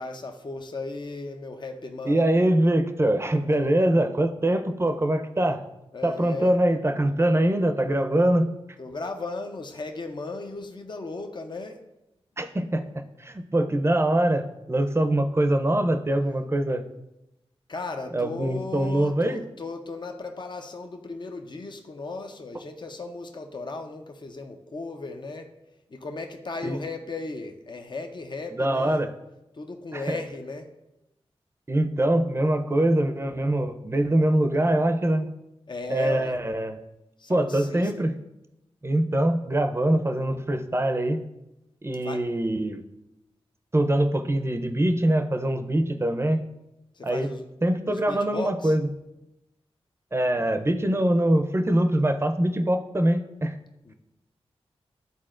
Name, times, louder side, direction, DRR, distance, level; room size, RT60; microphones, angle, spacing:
voice 1, 0.0-2.3 5.9-6.6 8.8-11.8 17.7-25.5 25.9-29.1 29.5-30.8 35.7-36.4 37.2-38.1 42.0-42.2 46.9-47.5 47.9-48.8 53.8-53.9, left 3 dB, 45° left, 5 dB, 0.7 m, -36 dB
voice 2, 2.0-5.6 6.0-8.5 12.4-12.8 13.2-16.8 18.1-19.4 26.6-26.8 28.6-29.1 29.9-30.2 31.7-35.3 35.9-36.8 37.3-38.1 38.8-41.2 41.8-42.8 43.7-46.4 47.0-47.3 47.6-48.8 50.1-53.6, right 1 dB, 25° right, 7 dB, 0.6 m, -23 dB
10.5 x 4.0 x 2.5 m, 0.92 s
cardioid pair, 50°, 11 cm